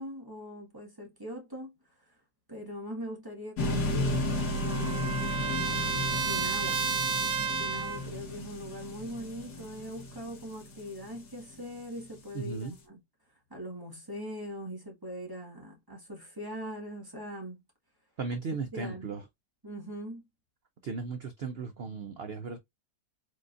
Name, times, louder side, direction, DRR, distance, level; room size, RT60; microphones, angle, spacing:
voice 1, 0.0-1.8 2.1-2.2 2.5-5.2 6.1-6.9 7.4-13.0 13.5-17.6 18.7-19.1 19.6-20.2, equal, 15° right, 1.6 m, -41 dB
sound 1, 3.6-11.6, left 2 dB, 65° left, 2.0 m, -33 dB
Trumpet, 3.7-8.1, right 6 dB, 60° right, 1.1 m, -32 dB
voice 2, 12.3-12.8 18.2-19.2 20.8-22.6, right 4 dB, 80° right, 0.5 m, -36 dB
4.9 x 3.8 x 2.5 m
omnidirectional pair, 1.9 m